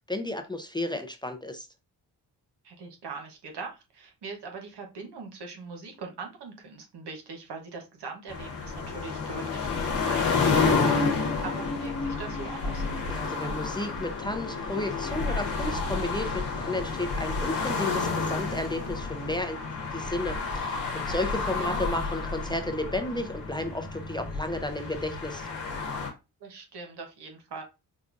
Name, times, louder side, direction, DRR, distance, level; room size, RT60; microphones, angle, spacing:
voice 1, 0.1-1.7 13.1-19.6 19.9-25.5, left 1 dB, 10° left, 6 dB, 0.6 m, -33 dB
voice 2, 2.6-10.4 10.7-12.8 21.6-21.8 26.4-27.6, right 4 dB, 70° right, 3 dB, 1.1 m, -41 dB
sound 1, 8.3-26.1, left 4 dB, 85° left, 1.1 m, -30 dB
5.2 x 2.3 x 2.5 m, 0.27 s
supercardioid pair, 50°, 41 cm